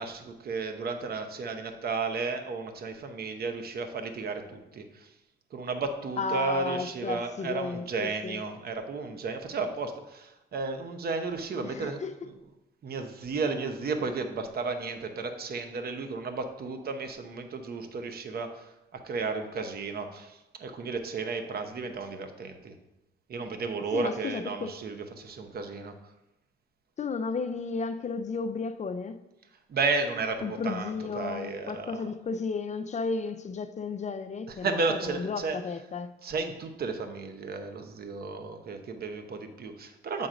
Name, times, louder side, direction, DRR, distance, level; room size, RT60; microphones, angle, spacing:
voice 1, 0.0-5.1 5.5-12.5 12.8-22.7 23.3-25.9 29.7-32.1 34.5-35.8 36.2-40.3, right 4 dB, 50° right, 0.9 m, -33 dB
voice 2, 6.2-8.4 11.6-12.2 23.9-24.7 27.0-29.2 30.4-36.1, left 4 dB, 35° left, 0.4 m, -33 dB
7.6 x 3.9 x 5.0 m
cardioid pair, 90°, 20 cm